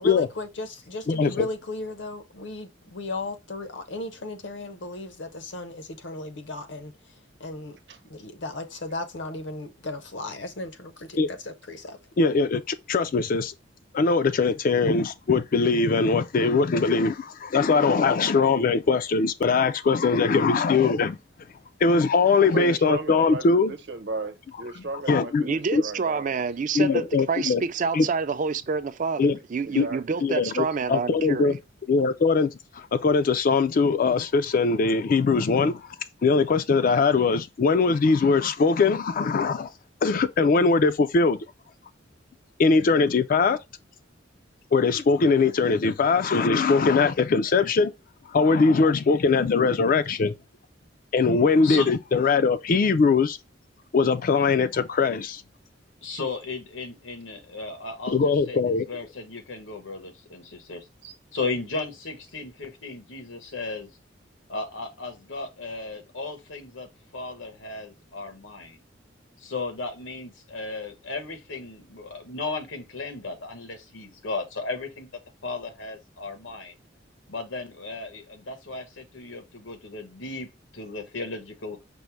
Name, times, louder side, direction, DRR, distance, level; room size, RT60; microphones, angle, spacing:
voice 1, 0.0-7.8 8.1-12.0, left 2 dB, 70° left, 0.8 m, -36 dB
voice 2, 1.1-1.5 11.2-11.3 12.2-13.5 13.9-21.2 21.8-23.7 25.1-25.5 25.7-25.8 26.7-27.6 27.9-28.1 29.2-29.4 29.7-29.8 30.2-31.6 31.9-35.9 36.2-39.7 40.0-41.4 42.6-43.6 44.7-47.9 48.3-50.3 51.1-53.4 53.9-55.4 58.1-58.9, left 4 dB, 45° left, 0.4 m, -21 dB
voice 3, 22.5-26.4 29.6-30.2 61.0-61.1, right 3 dB, 65° right, 0.9 m, -35 dB
voice 4, 25.4-31.5, right 5 dB, 45° right, 0.4 m, -28 dB
voice 5, 56.0-60.8 61.3-63.9 64.5-68.8 69.4-75.1 75.4-76.7 77.3-81.8, left 3 dB, 85° left, 1.2 m, -35 dB
5.3 x 2.1 x 4.5 m
head